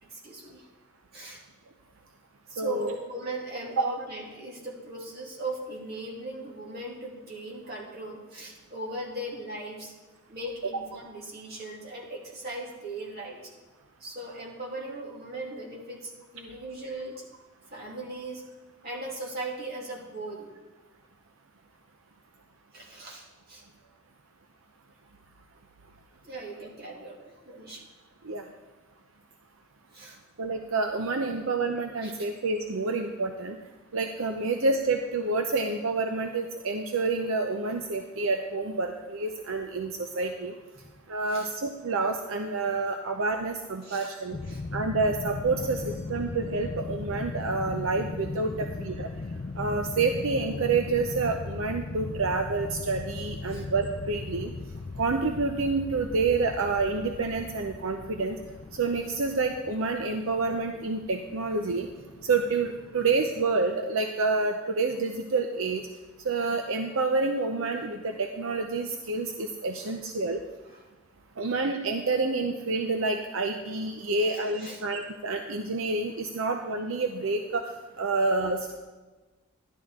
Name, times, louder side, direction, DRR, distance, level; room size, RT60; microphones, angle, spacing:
voice 1, 0.1-0.7 1.1-1.4 2.5-9.9 10.3-13.4 14.0-17.3 17.7-18.4 18.8-20.5 22.7-23.6 26.2-27.9 29.9-30.2 32.0-32.1 41.3-41.5 43.8-44.1 44.4-44.6 48.6-48.7 53.5-53.6 69.8-69.9 70.6-70.8 74.2-74.8 76.4-76.5, right 2 dB, 50° right, -4 dB, 2.7 m, -38 dB
voice 2, 2.6-2.9 3.8-3.9 28.2-28.4 30.4-33.6 33.9-40.5 41.1-44.4 44.7-49.1 49.6-54.5 55.0-58.4 58.7-61.9 62.2-65.8 66.2-70.4 71.4-77.6 78.0-78.7, right 3 dB, 80° right, 4 dB, 0.7 m, -28 dB
sound 1, 44.3-63.4, left 3 dB, 40° left, 0.4 m, -38 dB
12.0 x 11.5 x 3.7 m, 1.2 s
head